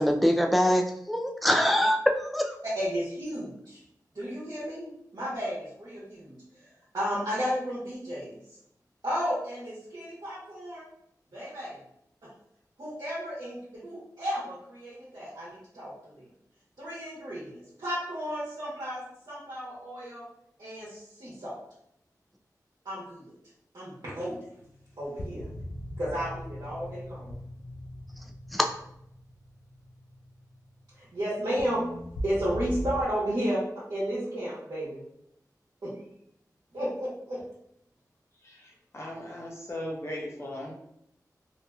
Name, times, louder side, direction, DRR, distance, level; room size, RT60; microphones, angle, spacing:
voice 1, 0.0-2.5 28.5-28.6, equal, ahead, 1 dB, 0.4 m, -24 dB
voice 2, 2.7-3.8 4.1-8.4 9.0-10.9 11.3-11.8 12.2-12.3 12.8-16.3 16.8-20.3 20.6-21.5 22.8-23.3 23.7-24.4 25.0-25.5 26.0-27.4 31.0-31.9 32.2-35.0 35.8-35.9 36.7-37.4, equal, 75° right, -9 dB, 1.0 m, -33 dB
sound 1, 24.6-33.0, equal, 90° left, 0.3 m, -40 dB
voice 3, 38.4-40.7, left 1 dB, 40° left, -3 dB, 0.7 m, -38 dB
2.8 x 2.6 x 2.3 m, 0.74 s
wide cardioid pair, 55°, 7 cm